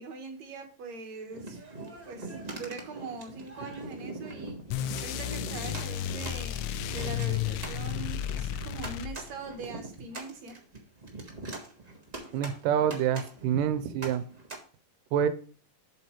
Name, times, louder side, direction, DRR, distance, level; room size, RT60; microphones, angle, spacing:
voice 1, 0.0-1.7 2.0-10.5, right 3 dB, 60° right, 4 dB, 2.5 m, -42 dB
sound 1, 1.3-14.6, right 2 dB, 35° right, 0.6 m, -42 dB
sound 2, 4.7-9.5, left 10 dB, 85° left, 2.3 m, -33 dB
voice 2, 12.3-14.2 15.1-15.3, right 9 dB, 85° right, 11 dB, 2.4 m, -27 dB
7.7 x 7.5 x 3.1 m, 0.41 s
omnidirectional pair, 3.8 m